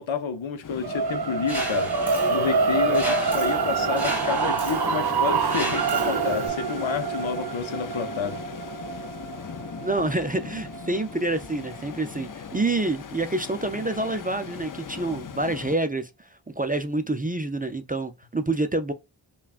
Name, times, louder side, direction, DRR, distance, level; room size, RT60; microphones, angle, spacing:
voice 1, 0.0-1.9 2.3-8.4, left 6 dB, 75° left, 0.7 m, -29 dB
sound 1, 0.6-15.8, left 7 dB, 45° left, 0.5 m, -39 dB
sound 2, 0.8-11.0, right 5 dB, 55° right, 0.6 m, -26 dB
Mechanisms, 1.5-6.5, left 1 dB, 5° right, 1.3 m, -34 dB
voice 2, 9.8-16.3 16.6-18.9, right 2 dB, 20° right, 0.4 m, -27 dB
5.6 x 2.3 x 2.4 m
wide cardioid pair, 65°, 47 cm